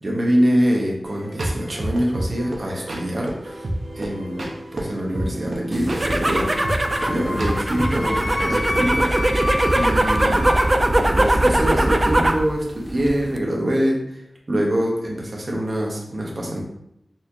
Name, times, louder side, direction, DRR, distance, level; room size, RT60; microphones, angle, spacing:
voice 1, 0.0-3.7 3.9-9.1 9.7-10.5 10.9-14.2 14.5-16.6, equal, 50° right, -2 dB, 0.9 m, -24 dB
sound 1, 1.0-8.1, right 1 dB, 75° right, 0.7 m, -29 dB
sound 2, 5.7-12.5 12.8-13.4, right 1 dB, 35° right, 0.3 m, -20 dB
Wind instrument woodwind instrument, 6.5-10.7, left 1 dB, 50° left, 0.4 m, -28 dB
4.1 x 2.8 x 2.5 m, 0.79 s
wide cardioid pair, 65°, 0 cm